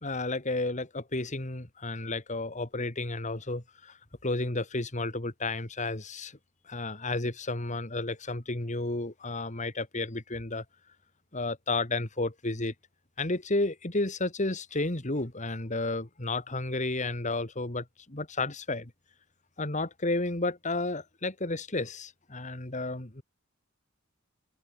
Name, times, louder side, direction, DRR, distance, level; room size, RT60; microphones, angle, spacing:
voice 1, 0.0-6.4 6.7-10.6 11.3-12.7 13.2-18.9 19.6-23.2, left 2 dB, 35° left, 2.3 m, -32 dB
head